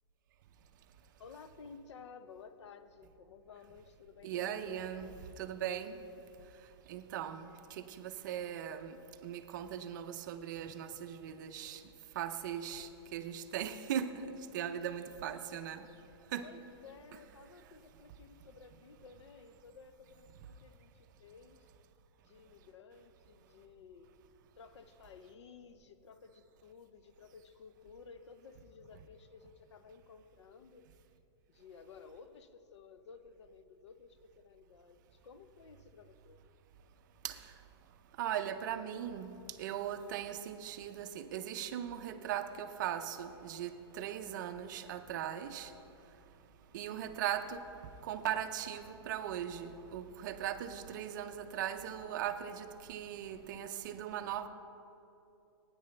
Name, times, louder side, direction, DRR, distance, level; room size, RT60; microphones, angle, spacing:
voice 1, 1.2-4.7 14.6-14.8 16.4-21.7 22.2-24.1 24.6-30.9 31.5-36.4, left 5 dB, 85° left, 0.7 m, -55 dB
voice 2, 4.2-6.0 6.9-9.0 9.2-11.8 12.1-15.9 16.3-16.5 37.2-37.5 38.2-39.3 39.6-45.7 46.7-54.5, right 10 dB, 45° right, 0.5 m, -39 dB
16.0 x 9.7 x 3.3 m
hypercardioid pair, 165°, 14 cm